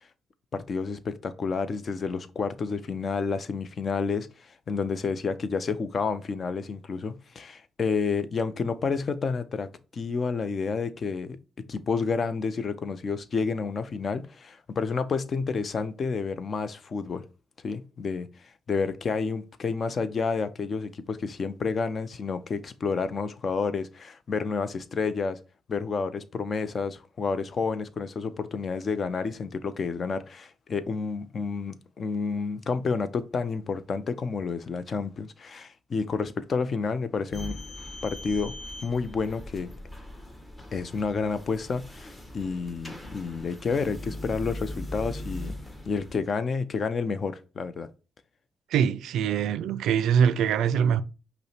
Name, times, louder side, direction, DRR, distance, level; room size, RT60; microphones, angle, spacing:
voice 1, 0.5-11.4 11.7-17.2 17.6-18.3 18.7-25.4 25.7-37.6 38.0-38.5 38.8-39.7 40.7-45.5 45.9-47.9, left 5 dB, 45° left, 0.5 m, -30 dB
sound 1, 37.3-46.2, left 1 dB, 15° left, 1.0 m, -40 dB
voice 2, 48.7-51.0, right 8 dB, 85° right, 0.3 m, -23 dB
5.4 x 2.1 x 4.3 m
cardioid pair, 85°, 0 cm